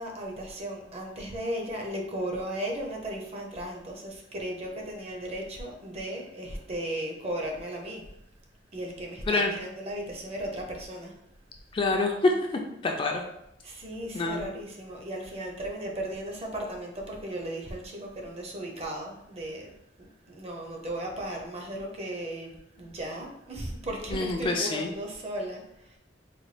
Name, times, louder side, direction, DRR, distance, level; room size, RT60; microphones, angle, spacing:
voice 1, 0.0-8.0 8.7-11.1 13.6-19.7 20.0-26.0, right 1 dB, 35° right, 1 dB, 0.6 m, -36 dB
voice 2, 11.7-12.3 12.8-13.2 14.1-14.4 24.1-24.9, left 3 dB, 25° left, 2 dB, 0.3 m, -26 dB
4.0 x 2.2 x 3.2 m, 0.81 s
head